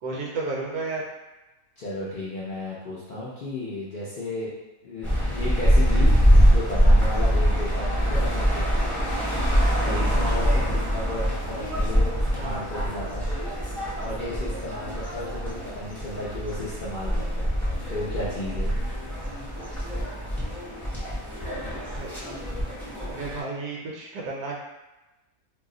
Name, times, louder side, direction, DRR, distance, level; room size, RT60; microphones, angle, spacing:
voice 1, 0.0-1.0 12.4-12.7 22.0-22.1 23.1-24.6, right 3 dB, 75° right, -3 dB, 1.0 m, -32 dB
voice 2, 1.8-4.5 4.8-5.1 5.3-8.6 9.8-13.3 14.0-17.5 17.9-18.7, left 1 dB, 80° left, -8 dB, 0.4 m, -34 dB
sound 1, 5.0-23.4, equal, ahead, 0.5 m, -24 dB
2.7 x 2.0 x 3.6 m, 1.0 s
omnidirectional pair, 1.7 m